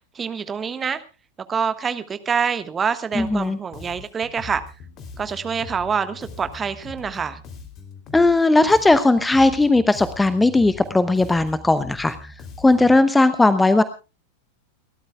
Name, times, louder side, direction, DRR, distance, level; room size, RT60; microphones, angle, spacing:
voice 1, 0.1-1.0 1.5-4.6 5.2-7.4, right 6 dB, 20° right, 11 dB, 1.4 m, -26 dB
Bass guitar, 3.1-3.5 3.7-8.4 8.7-13.0, left 4 dB, 35° left, 3.2 m, -41 dB
voice 2, 3.1-3.6 8.1-13.8, left 2 dB, 10° left, 14 dB, 0.9 m, -17 dB
29.5 x 13.0 x 2.3 m, 0.31 s
figure-of-eight pair, 90°, 0 cm